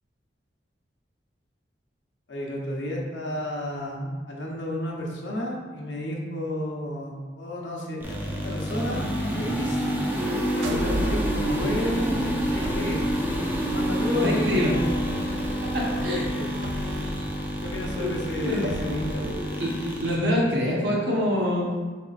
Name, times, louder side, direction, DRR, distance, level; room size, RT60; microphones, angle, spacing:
voice 1, 2.3-8.2 8.4-9.1 9.4-9.8 10.5-13.0 13.7-14.7 15.8-16.5 17.6-19.3, left 1 dB, 80° left, -2 dB, 0.8 m, -32 dB
sound 1, 8.0-20.2, equal, 10° right, 0.5 m, -28 dB
sound 2, 10.5-19.4, right 1 dB, 90° right, 0.4 m, -35 dB
voice 2, 14.1-14.7 15.6-16.2 18.0-18.7 19.2-21.7, left 1 dB, 65° right, -4 dB, 1.1 m, -26 dB
5.0 x 3.5 x 2.4 m, 1.4 s
head